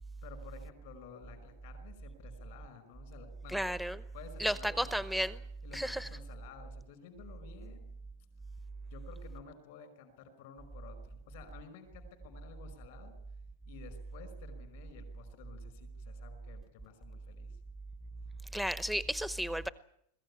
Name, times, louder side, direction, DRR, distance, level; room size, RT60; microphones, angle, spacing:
voice 1, 0.2-3.6 4.1-5.1 5.6-7.9 8.9-13.1 13.7-17.6, left 6 dB, 55° left, 5.5 m, -53 dB
voice 2, 3.5-4.0 4.4-5.4 5.7-6.1 18.5-19.7, equal, ahead, 0.8 m, -33 dB
21.5 x 15.0 x 9.9 m
supercardioid pair, 165°, 0 cm